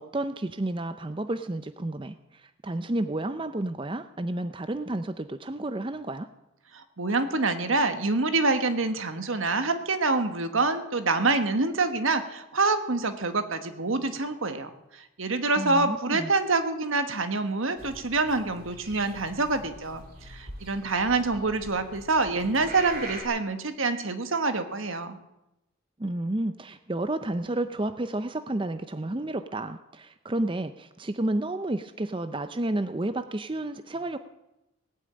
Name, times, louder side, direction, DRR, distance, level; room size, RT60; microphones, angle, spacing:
voice 1, 0.0-6.3 15.6-16.3 26.0-34.2, right 1 dB, 25° right, 10 dB, 0.5 m, -31 dB
voice 2, 6.7-25.2, right 3 dB, 75° right, 8 dB, 1.5 m, -26 dB
sound 1, 17.8-23.2, right 2 dB, 45° right, 2.9 m, -43 dB
18.5 x 8.9 x 8.8 m, 0.92 s
head